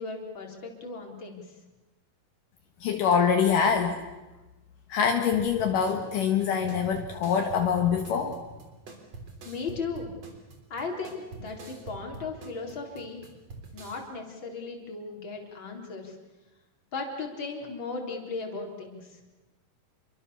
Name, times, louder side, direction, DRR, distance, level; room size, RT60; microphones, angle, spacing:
voice 1, 0.0-1.4 9.4-10.1 10.7-13.2 13.7-16.1 16.9-19.2, left 4 dB, 35° left, 2 dB, 4.4 m, -36 dB
voice 2, 2.8-4.0 4.9-8.3, left 7 dB, 70° left, 4 dB, 3.0 m, -24 dB
sound 1, 5.3-14.0, right 3 dB, 45° right, 4.5 m, -45 dB
28.5 x 23.5 x 7.0 m, 1.1 s
omnidirectional pair, 4.0 m